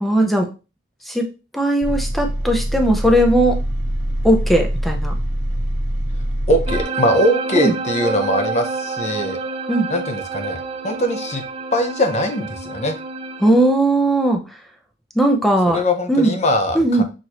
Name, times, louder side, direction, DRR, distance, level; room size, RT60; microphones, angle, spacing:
voice 1, 0.0-0.5 1.1-1.3 1.5-3.6 4.2-5.1 7.5-7.7 9.7-9.9 13.4-14.4 15.2-15.8 16.1-16.4 16.7-17.0, right 1 dB, ahead, 2 dB, 0.7 m, -17 dB
sound 1, 1.8-6.8, equal, 65° right, 1.3 m, -23 dB
voice 2, 6.5-9.4 9.9-11.5 11.7-13.0 15.7-17.0, equal, 35° left, 5 dB, 0.8 m, -21 dB
sound 2, 6.7-13.5, right 4 dB, 30° right, 0.3 m, -28 dB
6.4 x 2.7 x 3.0 m, 0.31 s
head